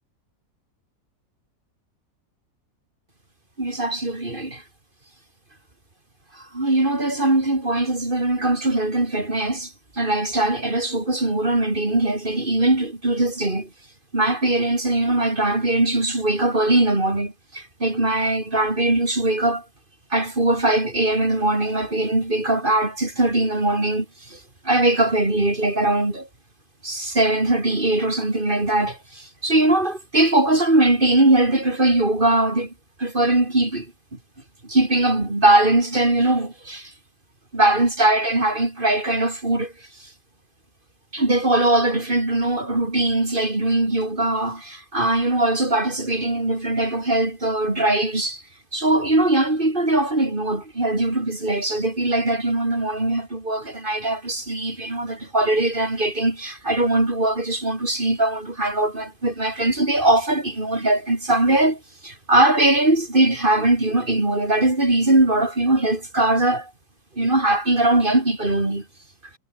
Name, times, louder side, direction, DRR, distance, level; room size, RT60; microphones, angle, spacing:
voice 1, 3.6-4.6 6.3-13.7 14.1-19.6 20.1-26.3 26.8-32.7 33.0-33.9 34.6-36.9 37.5-39.7 40.0-40.1 41.1-48.4 48.7-66.7 67.2-68.9, right 2 dB, 30° right, 3.5 m, -21 dB
omnidirectional pair, 1.9 m